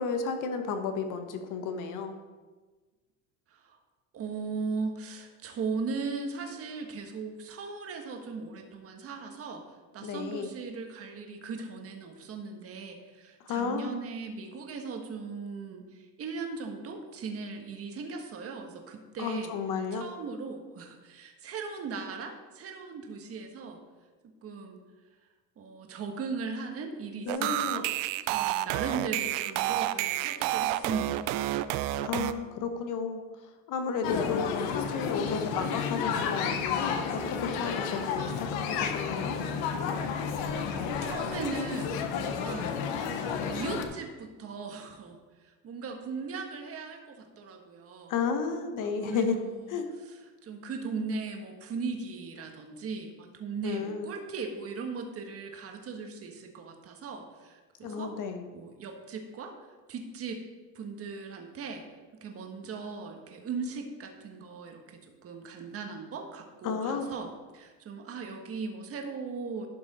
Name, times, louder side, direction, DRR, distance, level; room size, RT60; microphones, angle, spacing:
voice 1, 0.0-2.2 10.0-10.5 13.4-14.0 19.2-20.0 27.3-27.8 32.0-33.2 33.7-39.4 48.1-49.4 49.7-49.8 53.6-54.1 57.8-58.5 66.6-67.1, left 5 dB, 50° left, 6 dB, 1.3 m, -32 dB
voice 2, 4.1-9.6 9.9-19.5 19.9-23.8 24.4-24.8 25.6-27.9 28.3-31.3 40.5-42.8 43.1-48.2 48.8-58.1 58.5-59.5 59.9-60.4 60.7-61.8 62.2-69.7, right 4 dB, 35° right, 3 dB, 1.5 m, -38 dB
sound 1, 27.3-32.3, right 14 dB, 75° right, 0.6 m, -29 dB
sound 2, 34.0-43.8, left 6 dB, 70° left, 1.2 m, -31 dB
11.5 x 6.0 x 4.2 m, 1.3 s
supercardioid pair, 125°, 39 cm